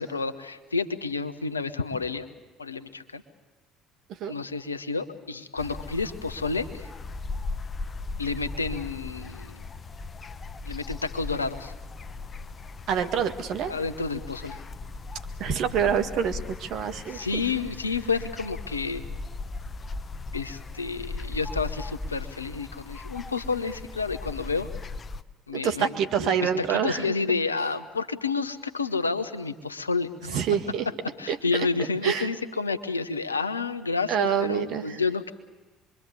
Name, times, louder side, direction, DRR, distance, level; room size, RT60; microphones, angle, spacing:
voice 1, 0.0-2.3 2.6-3.2 4.3-6.9 8.2-9.6 10.6-11.7 13.7-14.6 17.1-19.0 20.3-24.7 25.5-25.9 26.2-30.4 31.2-35.3, left 4 dB, 90° left, 12 dB, 0.9 m, -30 dB
sound 1, 5.6-25.2, left 3 dB, 30° left, 1.0 m, -38 dB
voice 2, 12.9-13.7 15.4-17.4 25.5-27.0 30.3-30.9 31.3-32.3 34.1-35.0, right 7 dB, 55° right, 7 dB, 1.8 m, -27 dB
26.0 x 23.0 x 8.2 m, 1.2 s
figure-of-eight pair, 60°, 0 cm